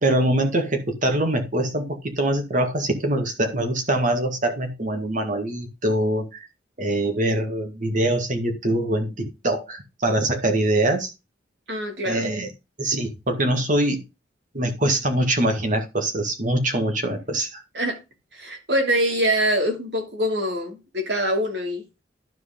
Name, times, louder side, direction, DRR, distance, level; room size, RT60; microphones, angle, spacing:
voice 1, 0.0-6.4 6.8-11.1 12.0-12.5 12.8-14.0 14.5-17.6, right 1 dB, 45° right, 1.9 m, -23 dB
voice 2, 11.7-12.3 17.7-18.0 18.3-21.8, equal, 65° right, 2.8 m, -24 dB
12.5 x 4.7 x 3.8 m
head